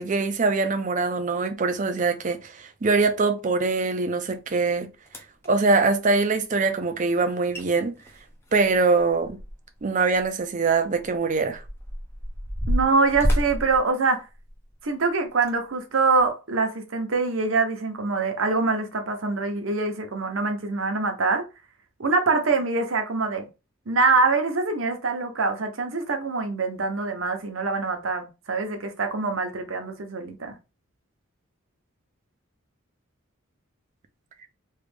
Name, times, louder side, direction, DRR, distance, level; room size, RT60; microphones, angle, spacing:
voice 1, 0.0-4.9 5.5-7.9 8.5-9.4 9.8-11.6, right 4 dB, 35° right, 0.5 m, -23 dB
sound 1, 4.6-4.7 5.1-5.5 7.2-7.3 7.5-7.6 8.0-9.8 10.1-10.3 11.0-14.7 15.3-15.5 16.1-16.3, equal, 10° left, 0.5 m, -29 dB
voice 2, 12.7-14.2 14.8-21.4 22.0-23.5 23.9-30.6, right 3 dB, 70° right, 0.8 m, -24 dB
3.1 x 2.4 x 3.4 m
head